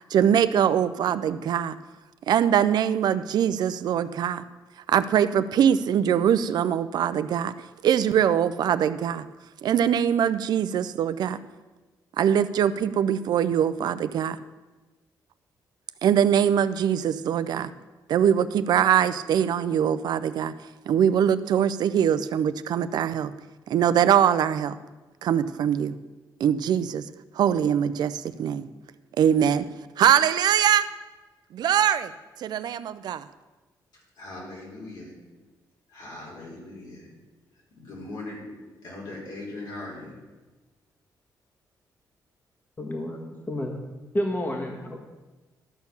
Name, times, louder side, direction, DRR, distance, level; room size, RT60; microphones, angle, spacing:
voice 1, 0.0-1.7 2.3-4.4 4.9-7.5 7.8-9.2 9.6-11.4 12.2-14.4 16.0-17.7 18.1-20.5 20.9-23.3 23.7-24.7 25.2-26.0 26.4-27.0 27.4-28.7 29.2-29.7 30.0-30.9 31.5-32.1 32.4-33.2, right 9 dB, 75° right, 0.5 m, -22 dB
voice 2, 34.2-35.2 35.9-37.1 37.8-38.4 38.8-40.2, left 2 dB, 75° left, 3.9 m, -39 dB
voice 3, 42.8-43.8 44.1-45.0, left 1 dB, 25° left, 1.6 m, -30 dB
12.5 x 4.5 x 7.0 m
cardioid pair, 100°, 7 cm